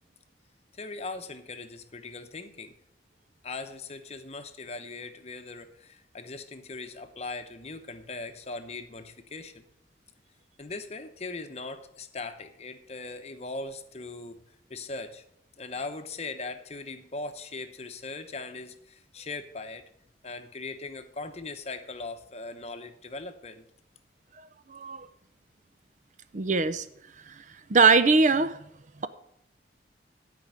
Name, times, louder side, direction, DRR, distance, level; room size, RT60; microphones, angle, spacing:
voice 1, 0.7-2.7 3.4-9.6 10.6-14.4 14.7-15.2 15.6-19.9 20.2-23.6, left 3 dB, 35° left, 8 dB, 0.9 m, -39 dB
voice 2, 24.7-25.1 26.3-26.9 27.3-27.4 27.7-28.6 29.0-29.1, right 4 dB, 40° right, 12 dB, 0.5 m, -21 dB
12.5 x 5.3 x 8.7 m, 0.77 s
head